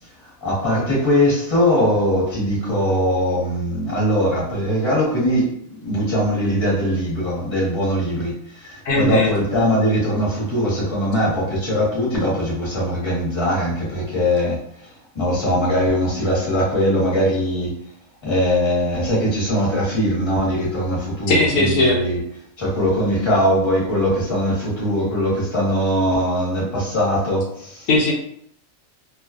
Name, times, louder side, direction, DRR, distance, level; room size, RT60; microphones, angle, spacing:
voice 1, 0.2-5.5 5.8-14.9 15.1-17.7 18.2-22.2 22.6-27.9, equal, 20° left, -6 dB, 1.0 m, -21 dB
voice 2, 8.8-9.3 21.3-22.0 27.9-28.1, left 2 dB, 90° left, 0 dB, 1.1 m, -18 dB
2.5 x 2.3 x 2.4 m, 0.67 s
omnidirectional pair, 1.4 m